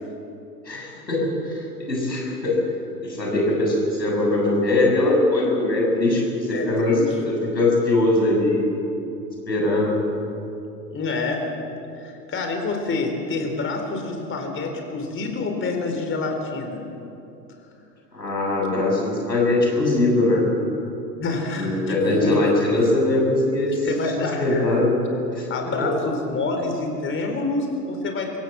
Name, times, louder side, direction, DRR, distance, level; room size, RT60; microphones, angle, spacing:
voice 1, 0.7-1.6 1.9-2.6 3.0-7.0 7.2-8.7 9.5-10.0 18.1-20.4 21.6-23.9 24.2-24.9 25.3-25.5, left 2 dB, 85° left, -1 dB, 7.2 m, -21 dB
voice 2, 6.5-7.2 10.9-11.4 12.0-16.8 21.2-22.4 23.7-24.7 25.5-28.4, left 3 dB, 25° left, 4 dB, 4.5 m, -27 dB
25.0 x 16.5 x 7.7 m, 2.8 s
figure-of-eight pair, 95°, 49 cm